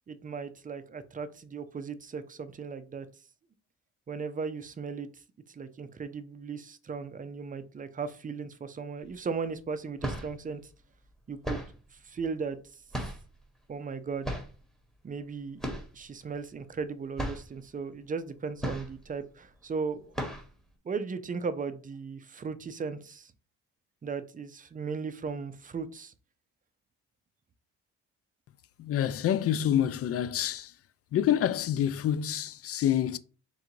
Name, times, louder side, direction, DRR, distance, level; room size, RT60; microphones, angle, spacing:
voice 1, 0.1-3.1 4.1-5.1 5.5-10.6 11.3-11.7 11.9-12.8 13.7-14.3 15.0-20.1 20.8-23.3 24.0-26.1, right 5 dB, 25° right, 0.5 m, -37 dB
sound 1, 9.0-9.1 9.8-10.4 11.4-11.9 12.9-13.4 14.2-14.6 15.6-16.0 16.3-16.4 16.8-16.9 17.2-17.5 18.6-19.2 19.6-19.7 20.1-20.6, equal, ahead, 1.3 m, -35 dB
voice 2, 28.8-30.7 31.1-33.2, left 10 dB, 50° left, 0.4 m, -27 dB
3.9 x 2.5 x 4.5 m
cardioid pair, 90°, 30 cm